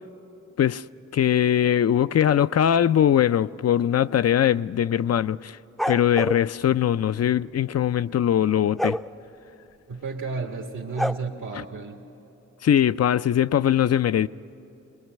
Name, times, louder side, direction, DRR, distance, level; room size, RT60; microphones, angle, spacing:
voice 1, 1.1-5.6 5.9-9.0 12.6-14.3, left 10 dB, 60° left, 0.4 m, -21 dB
sound 1, 5.8-6.4 8.8-9.0 11.0-11.1, equal, ahead, 0.5 m, -26 dB
voice 2, 9.9-12.0, right 4 dB, 85° right, 1.5 m, -32 dB
22.5 x 21.0 x 9.1 m
cardioid pair, 60°, 29 cm